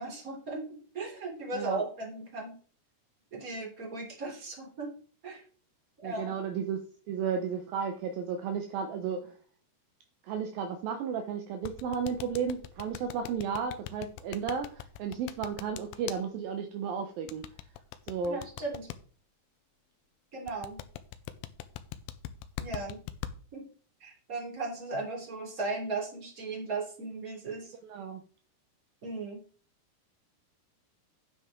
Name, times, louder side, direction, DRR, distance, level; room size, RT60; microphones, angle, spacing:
voice 1, 0.0-2.5 3.3-4.9 5.2-5.4 6.0-6.3 18.2-18.9 20.3-20.8 22.6-23.0 23.5-23.7 24.0-27.7 29.0-29.4, right 3 dB, 20° right, -1 dB, 3.4 m, -37 dB
voice 2, 6.0-9.3 10.2-17.4 18.1-18.4 27.9-28.2, right 6 dB, 75° right, 5 dB, 2.5 m, -33 dB
sound 1, 11.6-16.2 17.3-19.0 20.5-23.3, left 12 dB, 80° left, 2.3 m, -40 dB
9.8 x 8.9 x 3.8 m, 0.42 s
omnidirectional pair, 4.5 m